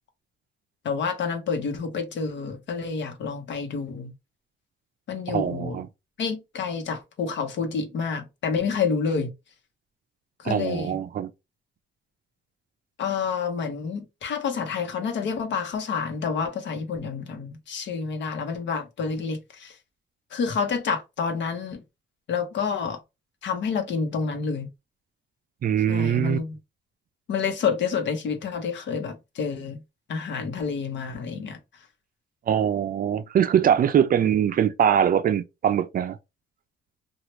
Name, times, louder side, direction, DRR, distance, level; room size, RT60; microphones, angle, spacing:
voice 1, 0.8-4.1 5.1-5.8 6.2-9.3 10.4-11.0 13.0-19.8 20.3-21.8 22.3-23.0 23.4-24.7 25.9-26.6 27.3-29.8 30.1-31.6, left 5 dB, 65° left, 0.9 m, -28 dB
voice 2, 5.3-5.9 10.4-11.3 25.6-26.4 32.5-36.2, right 9 dB, 45° right, 0.4 m, -22 dB
2.9 x 2.3 x 3.1 m
cardioid pair, 90°, 20 cm